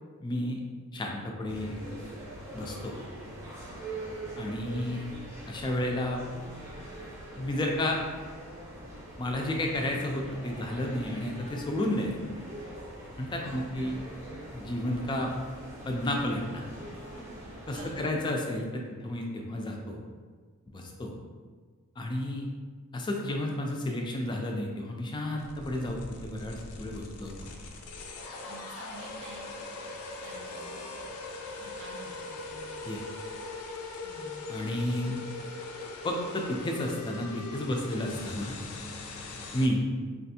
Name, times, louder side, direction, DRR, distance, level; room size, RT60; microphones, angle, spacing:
voice 1, 0.2-0.6 0.9-1.8 2.5-2.9 4.4-5.1 5.5-6.3 7.4-8.0 9.2-12.1 13.2-14.0 14.5-15.3 15.9-16.6 17.7-20.0 20.7-21.1 22.0-22.5 22.9-27.3 32.9-33.0 34.5-35.2 36.0-38.6 39.5-39.9, left 1 dB, 20° left, 1 dB, 0.3 m, -31 dB
sound 1, 1.5-18.0, right 1 dB, 15° right, 0.6 m, -43 dB
voice 2, 13.4-13.7 17.7-18.3 28.4-29.6 30.2-31.0 31.6-32.8 34.0-34.4, right 2 dB, 60° right, -1 dB, 0.6 m, -49 dB
sound 2, 25.4-39.7, left 3 dB, 90° left, 0.4 m, -41 dB
3.4 x 2.4 x 2.7 m, 1.5 s
head